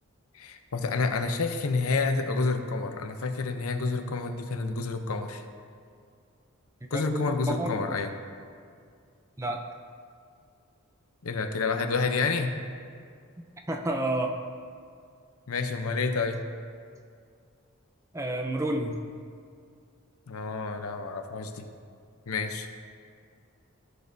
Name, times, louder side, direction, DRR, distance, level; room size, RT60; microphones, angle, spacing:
voice 1, 0.3-5.4 6.9-8.1 11.2-12.5 15.5-16.4 20.3-21.6 22.3-22.7, left 4 dB, 85° left, 7 dB, 0.7 m, -29 dB
voice 2, 6.9-7.8 9.4-9.6 13.7-14.4 18.1-19.0, right 1 dB, 15° right, 3 dB, 0.5 m, -30 dB
14.5 x 6.3 x 2.7 m, 2.3 s
head